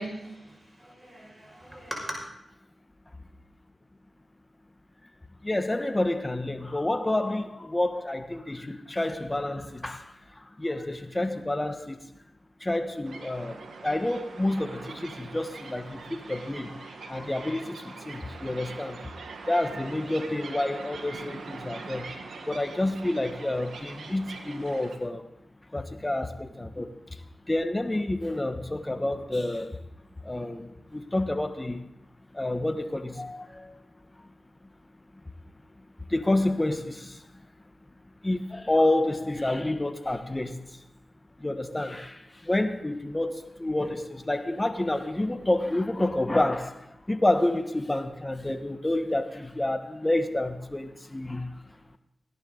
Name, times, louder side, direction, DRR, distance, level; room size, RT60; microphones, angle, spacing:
voice 1, 0.0-2.2, right 1 dB, 20° right, 5.9 m, -39 dB
voice 2, 5.4-12.1 12.6-19.0 19.4-22.1 22.4-25.3 25.7-29.8 30.2-31.8 32.3-33.8 34.2-34.3 36.1-37.3 38.2-40.8 41.4-51.6, left 1 dB, 25° left, 1.4 m, -29 dB
sound 1, 13.0-25.0, right 4 dB, 80° right, 1.5 m, -43 dB
17.0 x 11.0 x 4.0 m
cardioid pair, 40°, 0 cm